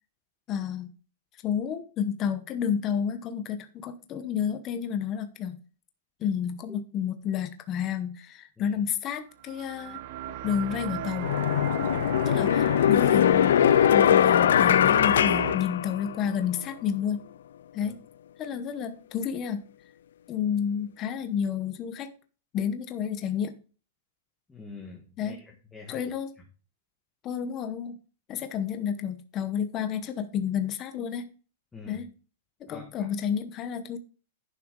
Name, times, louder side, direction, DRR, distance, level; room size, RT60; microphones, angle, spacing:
voice 1, 0.5-0.9 1.4-5.6 6.2-10.0 10.4-11.3 12.2-17.2 17.7-18.0 18.4-19.6 20.3-22.1 22.5-23.6 25.2-25.4 25.9-26.3 27.2-28.0 28.3-31.3 31.9-32.1 32.6-34.0, left 8 dB, 30° left, 9 dB, 0.9 m, -30 dB
sound 1, 9.4-15.5, right 10 dB, 55° right, 1.0 m, -36 dB
sound 2, 10.5-10.6 11.2-16.4, left 10 dB, 80° left, 0.3 m, -21 dB
voice 2, 11.7-12.1 17.8-17.9 24.5-26.0 31.7-32.0 32.7-33.1, left 4 dB, 10° left, 0 dB, 1.4 m, -46 dB
11.0 x 6.1 x 3.8 m, 0.37 s
supercardioid pair, 155°, 0 cm